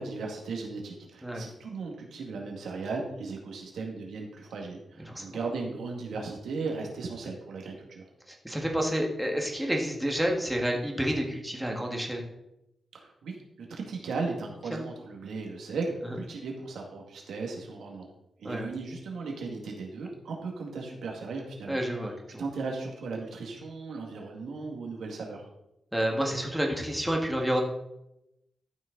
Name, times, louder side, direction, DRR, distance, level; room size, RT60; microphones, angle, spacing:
voice 1, 0.0-8.0 12.9-13.3 13.7-18.1 18.4-21.8 22.4-25.4, right 4 dB, 90° right, 1 dB, 2.0 m, -36 dB
voice 2, 5.0-5.4 8.3-12.2 14.7-14.8 18.4-18.7 21.7-22.4 25.9-27.6, equal, 5° right, 0 dB, 1.8 m, -29 dB
12.0 x 6.2 x 3.9 m, 0.87 s
wide cardioid pair, 110°, 0 cm